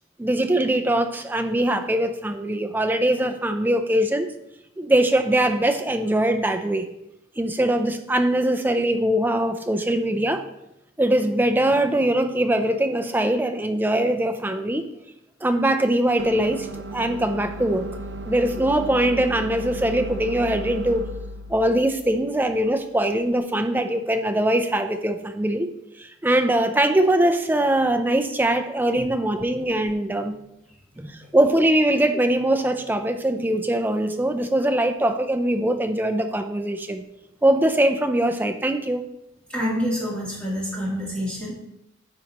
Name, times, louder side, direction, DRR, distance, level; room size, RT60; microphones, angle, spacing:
voice 1, 0.2-4.3 4.8-6.9 7.4-10.4 11.0-14.9 15.4-17.9 18.3-21.0 21.5-25.7 26.0-30.4 31.0-37.0 37.4-39.1, right 1 dB, 10° right, 7 dB, 0.4 m, -22 dB
sound 1, 16.2-23.3, equal, 60° right, 0.6 m, -36 dB
voice 2, 39.5-41.5, equal, 5° left, -7 dB, 2.8 m, -27 dB
9.6 x 6.1 x 2.9 m, 0.84 s
head